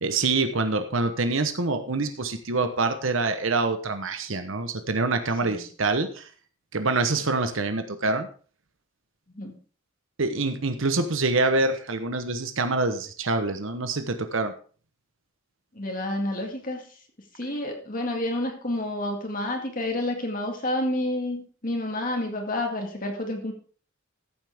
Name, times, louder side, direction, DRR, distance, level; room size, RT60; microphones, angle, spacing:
voice 1, 0.0-6.3 6.7-8.3 10.2-14.5, right 3 dB, 70° right, 8 dB, 1.0 m, -26 dB
voice 2, 15.8-16.8 17.4-23.5, left 1 dB, 40° left, 3 dB, 2.1 m, -29 dB
14.0 x 7.8 x 3.6 m, 0.40 s
head